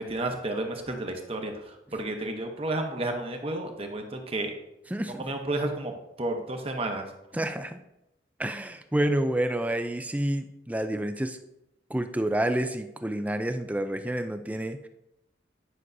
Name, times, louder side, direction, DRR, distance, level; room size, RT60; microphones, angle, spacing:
voice 1, 0.0-4.5 5.2-7.0, right 2 dB, 30° right, 4 dB, 0.9 m, -32 dB
voice 2, 4.9-5.3 7.3-7.8 8.4-11.4 11.9-14.9, right 1 dB, 10° right, 8 dB, 0.3 m, -29 dB
9.9 x 6.1 x 2.7 m, 0.88 s
head